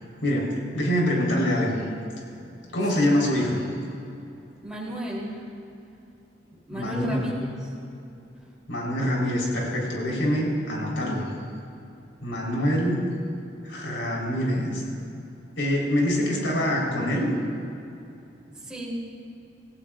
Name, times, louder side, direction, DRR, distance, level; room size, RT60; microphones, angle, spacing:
voice 1, 0.2-1.8 2.7-3.7 6.7-7.3 8.7-11.3 12.2-13.0 13.6-14.8 15.6-17.3, equal, 80° left, -3 dB, 4.1 m, -25 dB
voice 2, 4.6-5.4 6.7-7.3 7.6-7.7 18.6-19.1, right 1 dB, 5° right, -5 dB, 3.3 m, -33 dB
27.5 x 16.0 x 2.5 m, 2.8 s
head